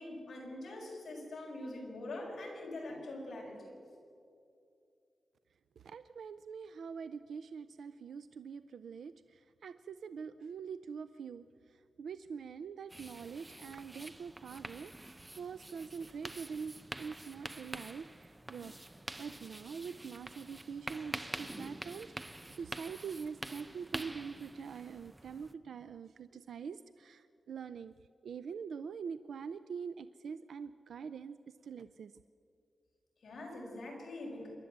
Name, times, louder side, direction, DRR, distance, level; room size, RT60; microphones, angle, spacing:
voice 1, 0.0-3.7 33.2-34.5, left 2 dB, 55° left, -2 dB, 6.0 m, -44 dB
voice 2, 5.8-11.4 11.7-18.7 19.2-27.9 28.2-31.4 31.6-32.1, right 6 dB, 80° right, 13 dB, 0.5 m, -44 dB
sound 1, 12.9-25.5, right 1 dB, 15° right, 0.7 m, -46 dB
27.0 x 12.0 x 8.1 m, 2.5 s
wide cardioid pair, 155°, 0 cm